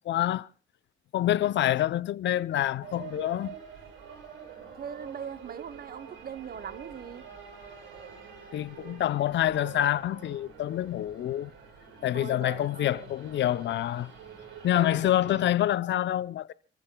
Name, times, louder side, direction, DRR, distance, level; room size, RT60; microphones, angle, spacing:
voice 1, 0.1-0.5 1.1-3.6 8.5-11.5 12.0-14.1 14.6-16.5, left 12 dB, 65° left, 0.7 m, -27 dB
sound 1, 2.8-15.5, right 6 dB, 85° right, 7.3 m, -47 dB
voice 2, 4.8-7.2 12.1-13.1 14.7-15.5, right 8 dB, 50° right, 1.0 m, -41 dB
29.0 x 14.5 x 2.3 m
cardioid pair, 90°, 20 cm